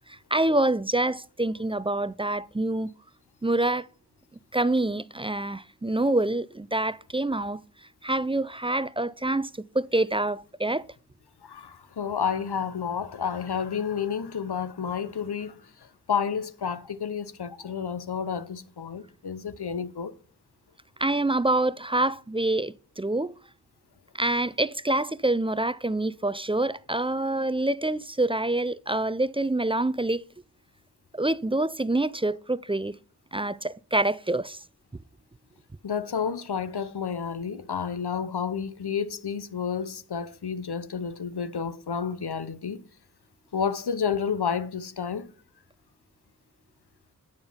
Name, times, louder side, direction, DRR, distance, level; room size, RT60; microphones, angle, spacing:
voice 1, 0.3-2.9 3.4-3.9 4.5-7.6 8.0-9.5 9.7-10.8 21.0-23.3 24.2-30.2 31.1-32.9 33.3-34.6, right 2 dB, 15° right, 0.3 m, -26 dB
voice 2, 11.4-15.6 16.1-20.1 35.8-42.8 43.5-45.3, left 6 dB, 90° left, 0.8 m, -30 dB
9.3 x 5.2 x 5.5 m
wide cardioid pair, 45°, 38 cm